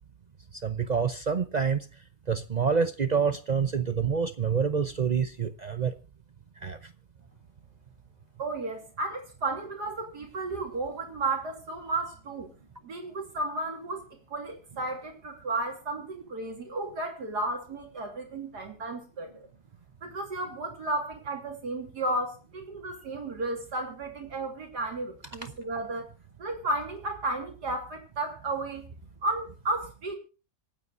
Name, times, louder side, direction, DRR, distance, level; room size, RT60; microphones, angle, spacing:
voice 1, 0.5-1.9 2.3-5.9 6.6-6.9 25.4-25.5, right 6 dB, 85° right, 11 dB, 0.3 m, -27 dB
voice 2, 8.4-12.5 12.8-19.5 20.0-26.1 26.4-28.8 29.2-30.2, right 2 dB, 65° right, 3 dB, 3.3 m, -33 dB
26.5 x 9.1 x 2.5 m, 0.33 s
omnidirectional pair, 1.9 m